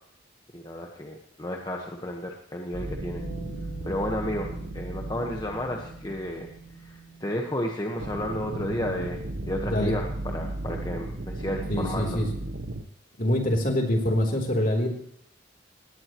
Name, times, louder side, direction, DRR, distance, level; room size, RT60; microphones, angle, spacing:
voice 1, 0.5-3.2 3.8-6.5 6.7-12.2, left 1 dB, 20° left, 1 dB, 1.3 m, -32 dB
sound 1, 2.7-7.0 8.0-12.8, right 2 dB, 60° right, 1.0 m, -35 dB
Bass guitar, 3.2-9.4, right 4 dB, 75° left, 4.4 m, -46 dB
voice 2, 11.7-12.3 13.2-14.9, left 1 dB, 45° left, 2 dB, 3.6 m, -25 dB
19.5 x 17.5 x 3.1 m, 0.70 s
head